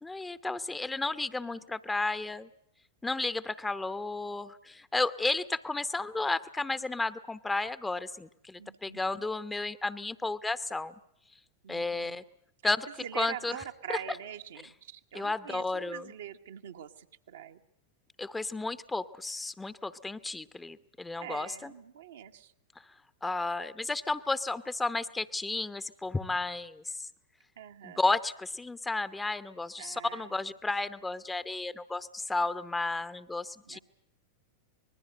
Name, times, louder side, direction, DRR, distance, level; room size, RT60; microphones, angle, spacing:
voice 1, 0.0-2.5 3.0-10.9 11.7-12.2 12.6-12.9 13.1-13.6 13.9-14.2 15.1-16.1 18.2-21.7 23.2-27.1 27.8-33.8, left 3 dB, 10° left, 14 dB, 0.9 m, -33 dB
voice 2, 8.6-9.2 11.6-12.2 13.0-17.6 21.1-22.5 27.6-28.0 29.8-30.4 33.6-33.8, right 10 dB, 65° right, 5 dB, 1.2 m, -44 dB
26.0 x 20.5 x 7.9 m, 0.75 s
figure-of-eight pair, 90°, 0 cm